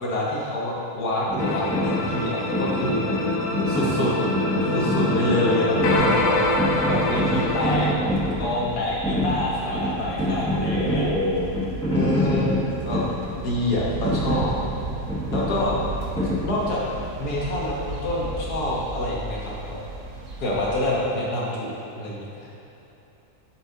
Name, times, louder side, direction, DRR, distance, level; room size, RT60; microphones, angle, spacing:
voice 1, 0.0-3.1 3.7-4.1 4.7-6.4 6.7-8.1 8.4-11.1 11.9-12.6 12.9-13.0 13.4-14.6 15.3-15.7 16.4-16.8 17.2-19.8 20.4-22.5, left 1 dB, 90° left, -5 dB, 1.8 m, -27 dB
sound 1, 1.3-17.0, equal, 5° left, 1.3 m, -27 dB
sound 2, 1.4-7.9, left 2 dB, 60° left, 0.8 m, -25 dB
voice 2, 5.0-5.5 10.7-11.5 15.5-15.7, left 1 dB, 40° left, -15 dB, 2.0 m, -28 dB
sound 3, 5.8-20.9, right 3 dB, 60° right, 1.1 m, -35 dB
7.8 x 6.9 x 2.8 m, 2.9 s
omnidirectional pair, 1.6 m